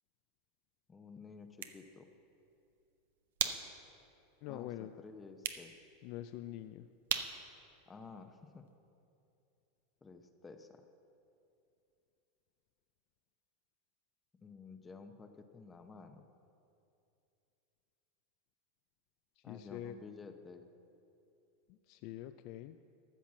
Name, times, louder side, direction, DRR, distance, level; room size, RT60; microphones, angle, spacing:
voice 1, 0.9-2.1 4.5-4.7 5.0-5.7 7.9-8.7 10.0-10.9 14.4-16.3 19.4-20.6, left 4 dB, 20° left, 6 dB, 0.7 m, -52 dB
sound 1, 1.3-8.8, right 9 dB, 80° right, 0.7 m, -43 dB
voice 2, 4.4-5.0 6.0-6.9 19.4-20.0 21.7-22.8, left 13 dB, 55° left, 10 dB, 0.3 m, -45 dB
13.5 x 5.8 x 7.3 m, 2.7 s
supercardioid pair, 120°, 0 cm